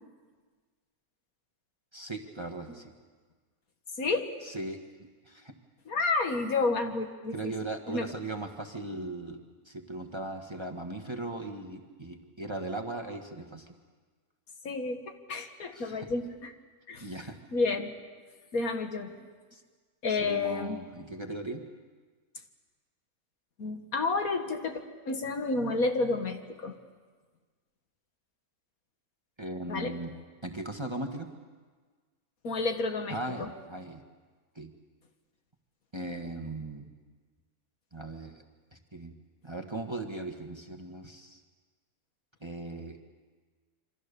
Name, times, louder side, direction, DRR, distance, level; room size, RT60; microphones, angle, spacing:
voice 1, 1.9-2.9 4.4-4.8 5.2-5.5 7.3-13.7 15.7-16.1 17.0-17.4 19.5-19.6 20.2-21.6 29.4-30.1 30.4-31.3 33.1-34.0 34.5-34.7 35.9-36.9 37.9-38.4 38.7-39.1 39.4-41.4 42.4-43.0, right 2 dB, 20° right, 4 dB, 1.5 m, -38 dB
voice 2, 4.0-4.3 5.9-7.5 7.9-8.1 14.6-15.0 15.3-16.5 16.9-17.1 17.5-17.9 18.5-19.1 20.0-20.8 23.6-26.7 29.7-30.0 32.4-33.5, left 3 dB, 65° left, 6 dB, 2.0 m, -30 dB
27.5 x 25.0 x 7.0 m, 1.4 s
omnidirectional pair, 1.6 m